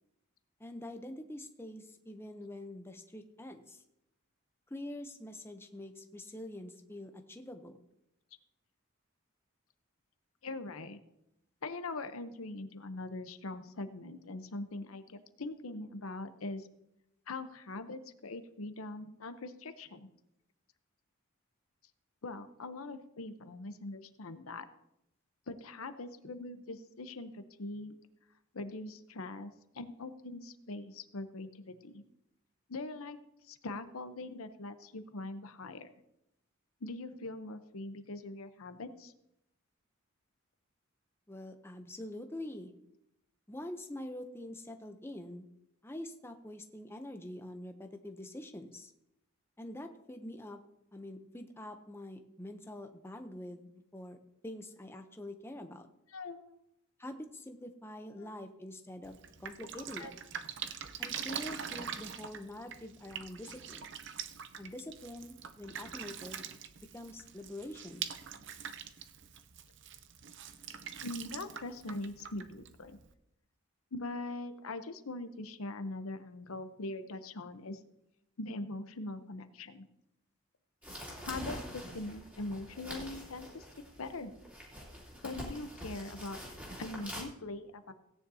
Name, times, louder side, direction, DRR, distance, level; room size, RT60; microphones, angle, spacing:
voice 1, 0.6-3.8 4.7-7.8 41.3-42.7 43.5-45.4 45.8-48.9 49.6-50.6 50.9-54.2 54.4-55.9 57.0-59.1 59.4-60.1 61.0-63.8 64.6-66.4 66.8-68.0, left 1 dB, 10° left, 6 dB, 0.7 m, -45 dB
voice 2, 10.4-11.0 11.6-16.7 17.3-20.1 22.2-24.6 25.5-28.0 28.5-32.0 32.7-33.2 33.4-35.9 36.8-39.1 56.1-56.5 58.2-58.3 60.0-60.1 71.0-73.0 73.9-77.8 78.4-79.8 81.2-83.7 84.0-84.3 85.2-86.4 86.8-87.9, left 2 dB, 85° left, 10 dB, 0.8 m, -42 dB
Drip, 59.0-73.1, right 8 dB, 55° right, 0.6 m, -44 dB
sound 1, 80.8-87.2, equal, 5° right, 2.7 m, -45 dB
17.0 x 9.5 x 2.8 m, 0.83 s
head